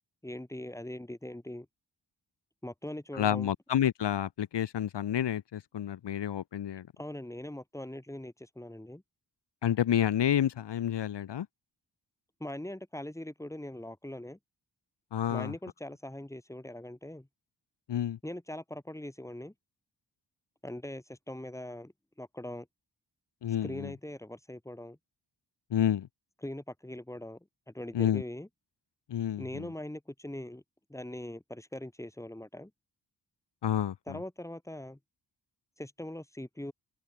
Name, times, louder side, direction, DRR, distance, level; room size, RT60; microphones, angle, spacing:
voice 1, 0.2-1.7 2.6-3.5 7.0-9.0 12.4-14.4 15.3-17.3 18.2-19.5 20.6-21.9 22.2-22.7 23.6-25.0 26.4-28.5 29.4-30.6 30.9-32.7 34.1-35.0 35.8-36.7, left 1 dB, 5° left, 5.7 m, -41 dB
voice 2, 3.1-6.9 9.6-11.5 15.1-15.5 17.9-18.2 23.4-23.9 25.7-26.1 27.9-28.2 29.1-29.7 33.6-34.2, left 10 dB, 75° left, 1.0 m, -29 dB
open air
wide cardioid pair, 160°, 42 cm